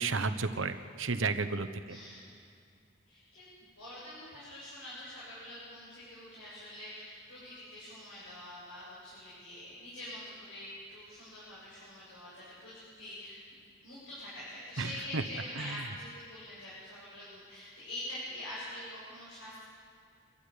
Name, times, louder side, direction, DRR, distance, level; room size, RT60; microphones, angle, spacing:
voice 1, 0.0-2.0 14.8-15.2 15.6-15.9, right 4 dB, 70° right, 9 dB, 1.1 m, -33 dB
voice 2, 1.9-2.2 3.1-19.6, left 1 dB, 85° left, -9 dB, 7.6 m, -45 dB
26.0 x 12.5 x 8.5 m, 2.4 s
head